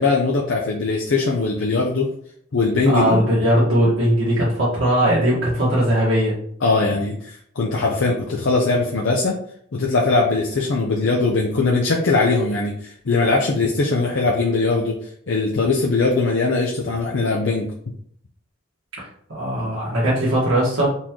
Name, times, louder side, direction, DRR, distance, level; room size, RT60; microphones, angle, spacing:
voice 1, 0.0-2.1 2.5-3.3 6.6-9.3 9.7-17.7, left 3 dB, 70° left, -1 dB, 0.6 m, -20 dB
voice 2, 2.9-6.3 19.0-20.9, equal, 80° right, -7 dB, 1.5 m, -19 dB
4.2 x 3.0 x 3.6 m, 0.65 s
head